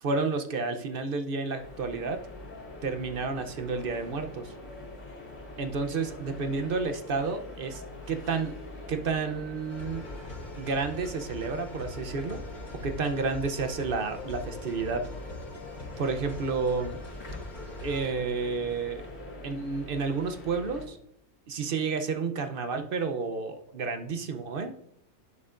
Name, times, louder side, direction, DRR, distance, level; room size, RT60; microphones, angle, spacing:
voice 1, 0.0-2.2 2.8-4.5 5.6-7.8 8.1-8.5 8.9-10.0 10.6-12.4 12.8-15.0 16.0-17.0 17.8-19.0 19.4-21.0 21.5-24.7, right 4 dB, 50° right, 7 dB, 0.6 m, -30 dB
sound 1, 1.6-20.9, left 2 dB, 55° left, 2.4 m, -44 dB
sound 2, 9.7-18.1, left 2 dB, 30° left, 1.7 m, -42 dB
10.5 x 6.5 x 2.5 m, 0.75 s
omnidirectional pair, 1.6 m